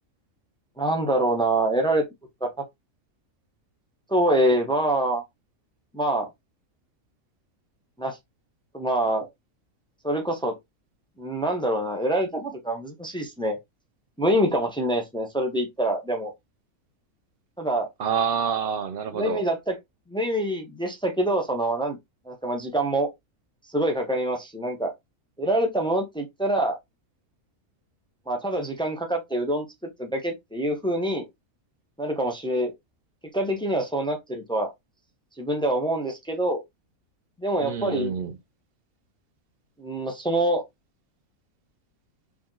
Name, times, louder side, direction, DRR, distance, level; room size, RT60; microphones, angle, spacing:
voice 1, 0.8-2.0 2.4-2.5 4.1-5.2 5.9-6.3 8.0-8.2 8.7-9.3 10.0-10.6 11.2-13.6 14.2-16.3 17.6-17.9 19.1-19.7 20.1-22.0 22.3-23.1 23.7-24.9 25.4-26.8 28.3-29.6 30.0-31.3 32.0-32.7 33.3-34.7 35.4-36.6 37.4-38.1 39.8-40.6, right 1 dB, 5° left, 0.7 m, -25 dB
voice 2, 18.0-19.4 37.6-38.4, right 7 dB, 70° right, 0.5 m, -27 dB
4.8 x 2.6 x 3.8 m
omnidirectional pair, 1.4 m